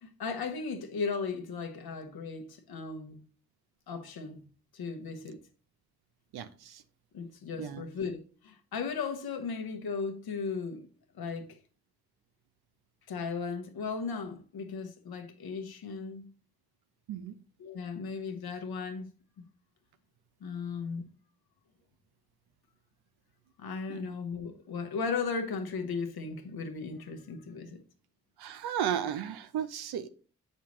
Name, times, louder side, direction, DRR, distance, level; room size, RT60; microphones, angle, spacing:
voice 1, 0.0-3.2 3.9-4.5 4.7-5.4 7.1-10.9 11.1-11.6 13.1-16.2 17.6-19.1 20.4-21.0 23.6-27.8, left 5 dB, 75° left, 1.1 m, -36 dB
voice 2, 6.3-6.8 7.6-7.8 17.1-17.3 23.9-24.2 28.4-30.1, right 9 dB, 80° right, 0.7 m, -34 dB
7.0 x 5.5 x 3.1 m
supercardioid pair, 45°, 38 cm